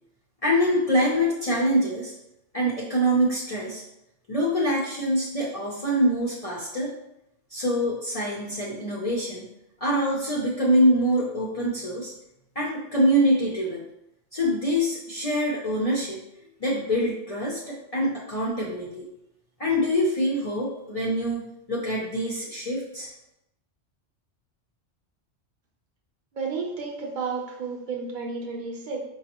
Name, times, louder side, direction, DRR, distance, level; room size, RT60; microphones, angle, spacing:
voice 1, 0.4-2.1 2.5-3.8 4.3-6.9 7.5-9.4 9.8-12.1 12.6-13.8 14.3-16.2 16.6-19.1 19.6-23.1, equal, 40° left, -5 dB, 0.5 m, -25 dB
voice 2, 26.3-29.0, right 4 dB, 50° right, 1 dB, 0.7 m, -32 dB
5.1 x 2.3 x 2.9 m, 0.83 s
omnidirectional pair, 1.2 m